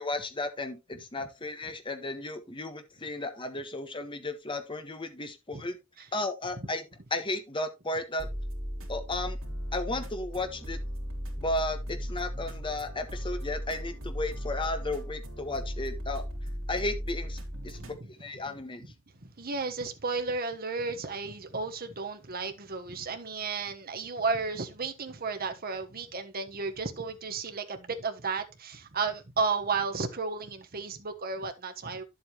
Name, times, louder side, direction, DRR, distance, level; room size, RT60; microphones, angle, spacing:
voice 1, 0.0-5.8 6.1-6.8 7.1-8.3 8.9-9.4 9.7-10.8 11.4-16.2 16.7-17.4 17.6-17.9 18.2-18.8, left 2 dB, 25° left, 1.5 m, -34 dB
sound 1, 8.2-18.0, equal, 70° right, 3.0 m, -36 dB
voice 2, 19.2-32.0, right 4 dB, 45° right, 1.3 m, -33 dB
10.5 x 7.9 x 3.1 m
head